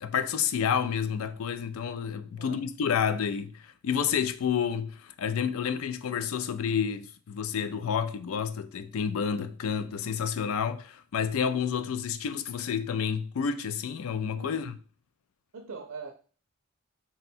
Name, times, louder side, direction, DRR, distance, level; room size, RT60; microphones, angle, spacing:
voice 1, 0.0-14.8, left 7 dB, 70° left, 0.3 m, -30 dB
voice 2, 14.3-14.8 15.5-16.1, right 4 dB, 70° right, 0.5 m, -42 dB
3.6 x 2.1 x 4.2 m
head